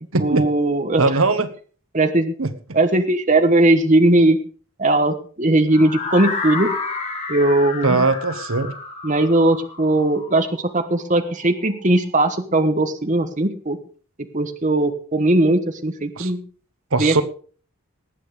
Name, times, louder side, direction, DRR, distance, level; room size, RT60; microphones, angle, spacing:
voice 1, 0.2-1.0 1.9-2.3 2.7-4.4 4.8-6.7 7.3-8.0 9.0-13.8 14.3-16.4 17.0-17.2, right 2 dB, 35° right, 7 dB, 1.3 m, -18 dB
voice 2, 1.0-1.5 2.4-2.5 7.8-8.7 16.2-16.3 16.9-17.2, right 3 dB, 75° right, 11 dB, 1.3 m, -19 dB
sound 1, 5.7-11.6, left 4 dB, 30° left, 2.4 m, -30 dB
19.5 x 8.6 x 5.0 m, 0.42 s
head